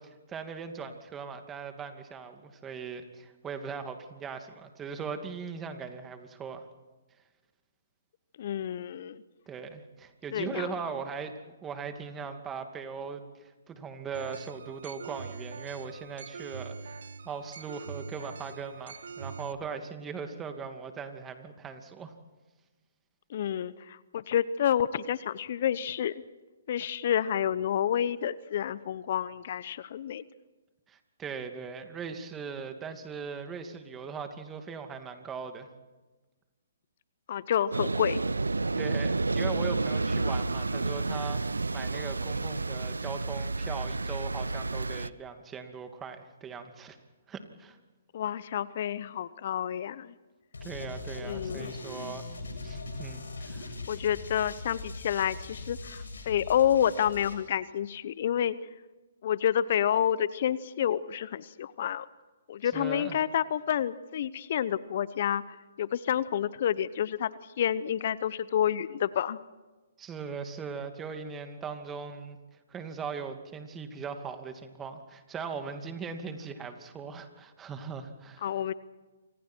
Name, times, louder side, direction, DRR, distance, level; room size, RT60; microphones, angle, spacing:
voice 1, 0.0-6.7 9.5-17.0 17.2-22.1 30.9-35.7 38.8-47.0 47.3-47.8 50.6-52.2 52.6-53.7 62.7-63.2 70.0-72.4 72.7-78.5, right 5 dB, 15° right, 6 dB, 2.5 m, -39 dB
voice 2, 8.4-9.2 10.3-10.7 23.3-26.1 26.7-30.2 37.3-38.2 48.1-50.1 51.2-51.8 53.9-58.6 59.2-62.1 62.5-65.4 65.8-67.3 67.6-69.4 78.4-78.7, left 10 dB, 50° left, 17 dB, 0.9 m, -29 dB
sound 1, 14.1-19.5, right 5 dB, 65° right, 1.0 m, -43 dB
sound 2, 37.7-45.1, right 3 dB, 85° right, 0.7 m, -30 dB
sound 3, 50.5-57.3, left 3 dB, 80° left, 7.7 m, -41 dB
28.5 x 26.0 x 4.6 m, 1.2 s
hypercardioid pair, 135°, 0 cm